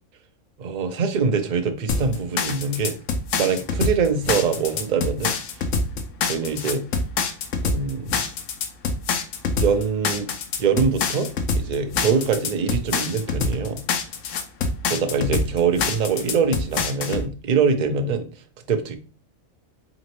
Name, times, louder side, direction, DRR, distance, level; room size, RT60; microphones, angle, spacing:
voice 1, 0.6-3.0 3.4-5.3 6.2-6.8 7.6-8.2 9.6-10.3 10.6-13.8 14.9-18.3 18.7-19.0, right 5 dB, 55° right, 0.5 m, -23 dB
sound 1, 1.9-17.3, left 4 dB, 65° left, 0.9 m, -25 dB
3.8 x 3.6 x 3.0 m
omnidirectional pair, 1.5 m